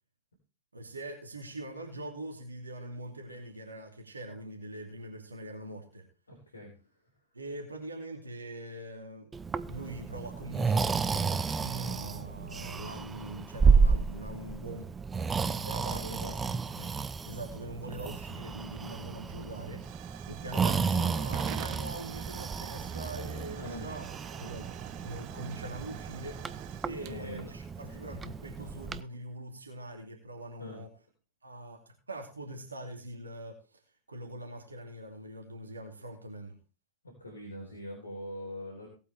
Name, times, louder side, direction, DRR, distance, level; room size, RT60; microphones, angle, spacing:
voice 1, 0.7-6.1 7.3-9.4 9.6-14.9 15.4-16.9 17.2-24.7 25.0-30.9 31.4-33.8 34.1-36.5, right 1 dB, 75° right, 2 dB, 2.5 m, -43 dB
voice 2, 6.3-6.7 15.9-16.4 23.5-24.0 27.0-28.0 30.6-30.8 37.0-38.9, left 1 dB, 75° left, -2 dB, 4.1 m, -43 dB
Breathing, 9.3-29.0, right 5 dB, 15° right, 0.6 m, -31 dB
Hiss / Fire / Tick, 18.2-28.6, right 14 dB, 45° right, 0.9 m, -46 dB
18.0 x 8.4 x 3.4 m, 0.35 s
figure-of-eight pair, 90°, 0 cm